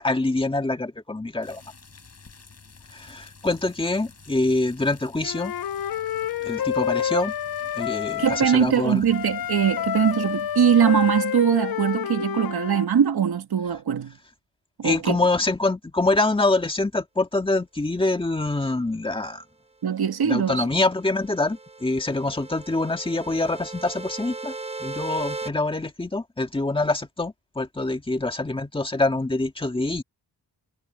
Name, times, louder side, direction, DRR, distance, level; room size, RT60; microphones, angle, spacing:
voice 1, 0.0-1.6 2.9-5.5 6.5-7.3 7.7-9.1 14.8-19.4 20.2-24.5 24.8-30.0, left 2 dB, 15° left, 1.9 m, -25 dB
sound 1, 1.4-11.2, left 4 dB, 40° left, 6.6 m, -50 dB
Wind instrument woodwind instrument, 5.2-8.6 9.1-12.9, left 10 dB, 60° left, 0.7 m, -28 dB
voice 2, 8.2-14.1 14.8-15.2 19.8-20.6, right 8 dB, 70° right, 1.8 m, -21 dB
sound 2, 20.6-25.5, right 3 dB, 15° right, 0.9 m, -37 dB
wide cardioid pair, 155°, 39 cm